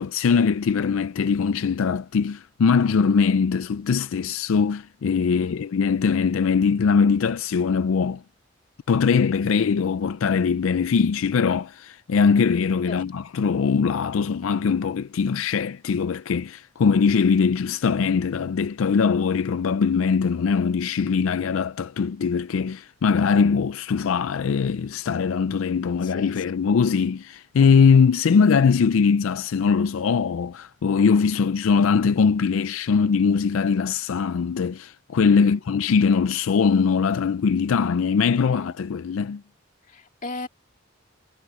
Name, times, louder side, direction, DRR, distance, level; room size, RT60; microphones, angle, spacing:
voice 1, 0.0-8.2 8.9-39.4, left 5 dB, 80° left, 0.4 m, -21 dB
voice 2, 26.0-26.6 27.7-27.9 35.4-35.6 38.2-38.7 39.9-40.5, left 2 dB, 40° left, 2.2 m, -38 dB
head